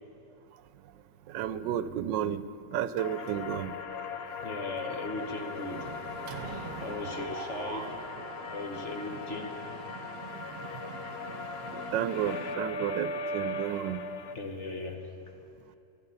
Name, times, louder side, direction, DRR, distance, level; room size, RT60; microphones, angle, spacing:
voice 1, 1.3-2.4 2.7-3.7 11.7-14.0, right 10 dB, 80° right, 14 dB, 1.3 m, -32 dB
sound 1, 3.0-14.3, left 3 dB, 65° left, 0.6 m, -39 dB
Mechanisms, 3.0-3.6 3.9-4.1 4.4-12.5, right 6 dB, 60° right, 1.2 m, -44 dB
voice 2, 4.1-8.0 8.5-9.7 14.3-15.1, left 2 dB, 45° left, 4 dB, 1.3 m, -38 dB
25.5 x 9.3 x 5.6 m, 2.8 s
omnidirectional pair, 1.9 m